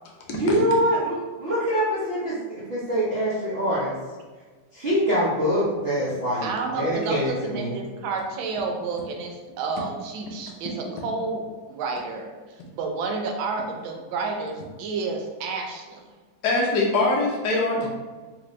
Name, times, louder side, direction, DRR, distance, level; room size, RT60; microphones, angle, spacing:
voice 1, 0.3-3.9 4.7-6.5 6.7-7.8 17.8-17.9, equal, 65° right, -10 dB, 0.6 m, -24 dB
voice 2, 6.4-16.0, right 4 dB, 85° right, 2 dB, 1.4 m, -30 dB
voice 3, 16.4-17.9, left 2 dB, 70° left, -1 dB, 1.0 m, -23 dB
3.2 x 2.6 x 3.0 m, 1.4 s
omnidirectional pair, 2.1 m